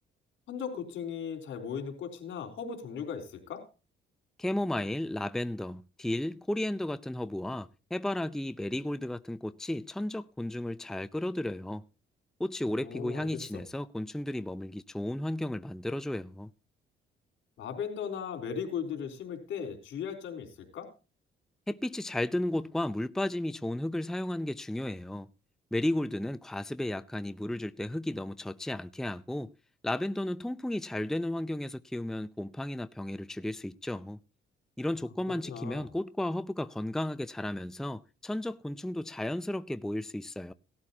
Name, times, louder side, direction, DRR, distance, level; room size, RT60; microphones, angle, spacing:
voice 1, 0.5-3.6 12.7-13.6 17.6-20.9 35.4-35.9, left 7 dB, 75° left, 4.1 m, -37 dB
voice 2, 4.4-11.9 12.4-16.5 21.7-25.3 25.7-29.5 29.8-34.2 34.8-40.5, left 1 dB, ahead, 0.5 m, -34 dB
18.0 x 12.5 x 2.8 m
cardioid pair, 90°, 20 cm